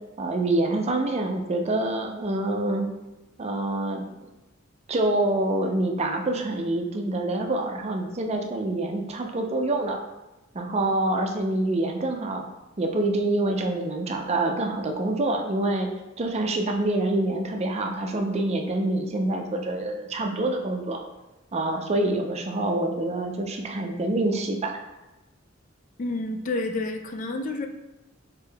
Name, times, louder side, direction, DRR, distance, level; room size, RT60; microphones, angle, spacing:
voice 1, 0.2-2.9 3.4-4.1 4.9-10.0 10.5-12.5 12.8-15.9 16.2-21.0 21.5-24.8, right 2 dB, 35° right, 3 dB, 0.5 m, -26 dB
voice 2, 26.0-27.7, left 2 dB, 40° left, 5 dB, 0.4 m, -29 dB
3.6 x 3.6 x 3.3 m, 1.0 s
head